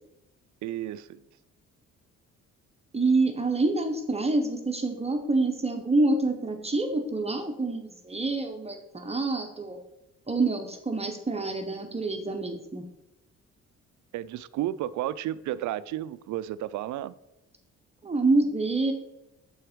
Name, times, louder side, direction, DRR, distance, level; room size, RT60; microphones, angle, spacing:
voice 1, 0.6-1.2 14.1-17.1, right 13 dB, 70° right, 0.4 m, -32 dB
voice 2, 2.9-9.8 10.3-12.9 18.0-18.9, right 3 dB, 20° right, 0.8 m, -27 dB
7.1 x 4.5 x 4.9 m
cardioid pair, 90°, 30 cm